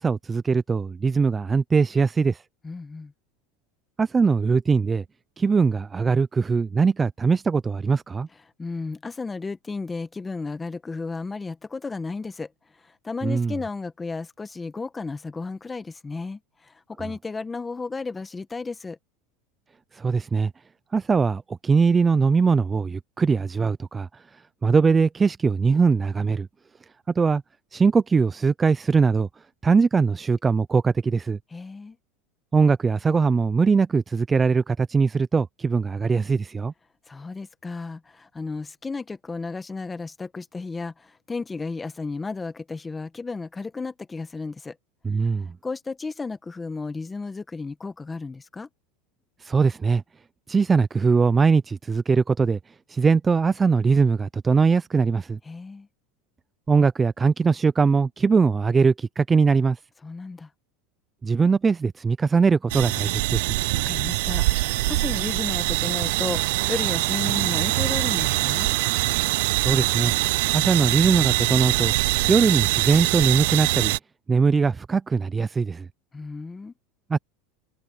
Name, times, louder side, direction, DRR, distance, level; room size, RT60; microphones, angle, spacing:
voice 1, 0.0-2.4 4.0-5.0 5.4-8.3 13.2-13.5 19.9-20.5 20.9-24.2 24.6-26.5 27.2-27.4 27.7-29.3 29.6-31.4 32.5-36.7 45.0-45.5 49.4-50.0 50.5-52.6 52.9-55.4 56.7-59.8 61.2-63.5 69.6-70.1 70.5-71.9 72.3-73.9 74.3-75.9 77.1-77.2, right 5 dB, 20° right, 0.5 m, -21 dB
voice 2, 2.6-3.1 8.6-12.5 12.8-19.0 31.5-32.0 37.1-44.7 45.4-48.7 55.4-55.9 60.0-60.5 63.7-68.7 76.1-76.7, left 4 dB, 15° left, 1.5 m, -33 dB
sound 1, 62.7-74.0, right 20 dB, 75° right, 0.4 m, -23 dB
supercardioid pair, 125°, 0 cm